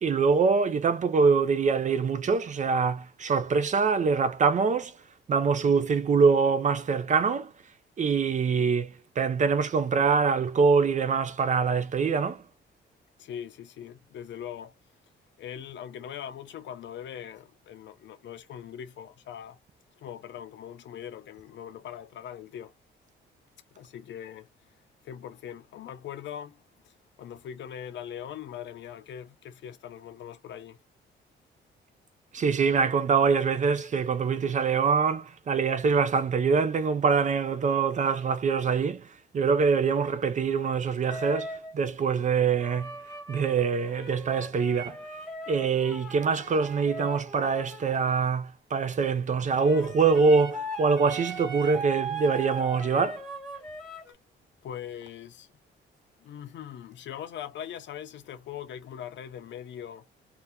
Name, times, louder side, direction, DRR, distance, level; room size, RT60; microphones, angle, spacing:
voice 1, 0.0-5.0 5.3-7.5 8.0-12.4 32.3-39.1 39.3-42.9 43.3-45.0 45.5-53.2, right 5 dB, 40° right, 0.5 m, -24 dB
voice 2, 13.2-14.7 15.4-19.6 20.0-22.7 23.7-24.5 25.0-30.8 54.1-54.2 54.6-55.5 56.2-60.1, left 9 dB, 65° left, 0.6 m, -41 dB
sound 1, 41.1-41.7 42.6-48.3 49.4-54.1, right 2 dB, 5° left, 1.2 m, -39 dB
2.8 x 2.2 x 3.5 m
cardioid pair, 90°, 20 cm